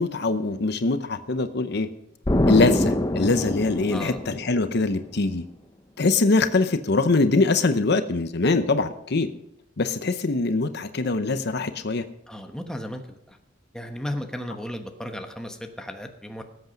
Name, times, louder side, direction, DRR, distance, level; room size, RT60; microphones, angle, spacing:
voice 1, 0.0-1.9 2.5-5.4 6.0-9.3 9.8-12.0, left 3 dB, 60° left, 10 dB, 0.8 m, -23 dB
Explosion, 2.3-4.9, left 1 dB, 20° left, 0.7 m, -24 dB
voice 2, 12.3-13.4 13.7-16.4, left 1 dB, 5° left, 4 dB, 1.2 m, -35 dB
19.0 x 8.2 x 5.2 m, 0.79 s
head